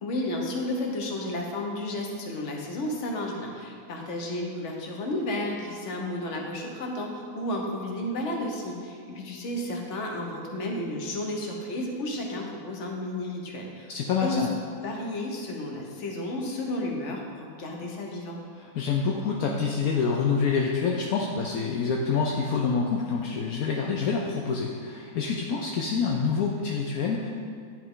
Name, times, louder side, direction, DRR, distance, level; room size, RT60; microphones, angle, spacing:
voice 1, 0.0-13.9 14.2-14.5 14.7-18.4, left 1 dB, 55° left, 1 dB, 1.2 m, -32 dB
voice 2, 13.9-14.5 18.6-27.3, left 5 dB, 75° left, 0 dB, 1.0 m, -27 dB
10.0 x 4.7 x 3.7 m, 2.2 s
omnidirectional pair, 1.6 m